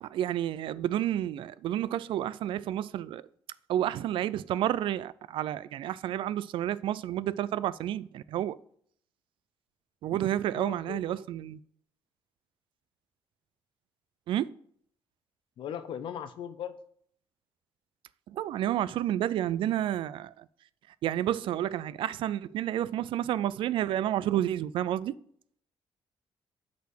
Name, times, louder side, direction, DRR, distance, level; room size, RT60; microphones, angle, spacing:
voice 1, 0.0-3.2 3.7-8.6 10.0-11.6 14.3-14.5 18.3-20.4 21.0-25.1, right 12 dB, 75° right, 0.3 m, -30 dB
voice 2, 10.5-11.2 15.6-16.8, left 9 dB, 70° left, 0.7 m, -38 dB
8.2 x 4.2 x 6.3 m
cardioid pair, 145°, 9 cm